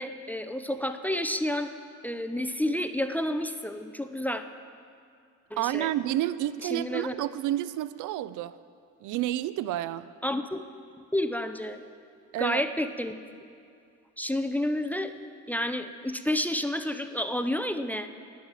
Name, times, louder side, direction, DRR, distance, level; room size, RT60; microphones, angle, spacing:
voice 1, 0.0-1.7 2.0-4.4 5.5-5.9 6.7-7.1 10.2-10.6 11.1-11.8 12.4-13.1 14.2-15.1 15.5-18.1, left 1 dB, 5° left, 9 dB, 0.5 m, -30 dB
voice 2, 5.6-8.6 9.0-10.1 12.3-12.6, right 14 dB, 80° right, 16 dB, 0.5 m, -30 dB
10.5 x 9.5 x 7.4 m, 2.4 s
cardioid pair, 90°, 30 cm